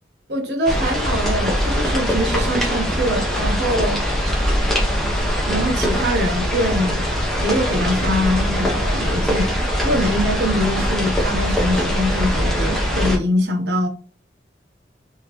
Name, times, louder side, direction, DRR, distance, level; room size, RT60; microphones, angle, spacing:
voice 1, 0.3-4.0 5.4-7.1 7.4-9.5 9.8-13.9, equal, 70° right, 1.0 m, -23 dB
sound 1, 0.7-13.2, equal, ahead, 0.8 m, -21 dB
3.5 x 2.8 x 3.0 m
head